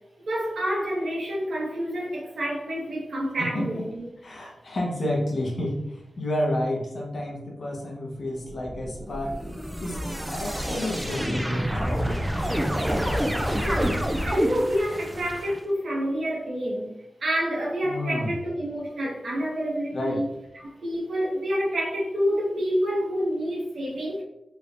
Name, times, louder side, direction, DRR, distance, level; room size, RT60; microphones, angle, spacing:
voice 1, 0.3-4.1 13.5-16.9 17.2-20.2 20.6-24.2, equal, 70° right, -4 dB, 1.1 m, -28 dB
voice 2, 3.4-3.8 4.2-9.5 9.8-10.0 10.3-12.3 17.8-18.4 19.9-20.2, left 1 dB, 50° left, -2 dB, 0.8 m, -30 dB
sound 1, 8.5-15.6, equal, 5° right, 0.3 m, -28 dB
3.2 x 3.2 x 2.5 m, 0.88 s
wide cardioid pair, 145°, 0 cm